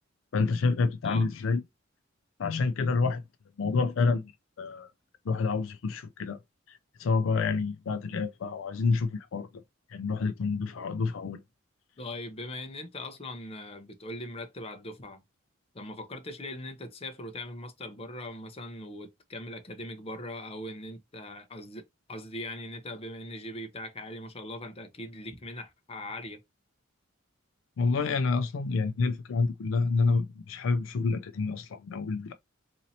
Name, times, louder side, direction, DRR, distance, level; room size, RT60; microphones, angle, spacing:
voice 1, 0.3-1.6 2.4-3.2 3.6-4.3 4.6-4.9 5.3-6.4 6.7-9.5 9.9-11.4 27.8-32.3, left 4 dB, 70° left, 0.4 m, -28 dB
voice 2, 12.0-15.2 15.7-26.4, left 1 dB, 30° left, 0.7 m, -40 dB
4.1 x 2.7 x 2.7 m
head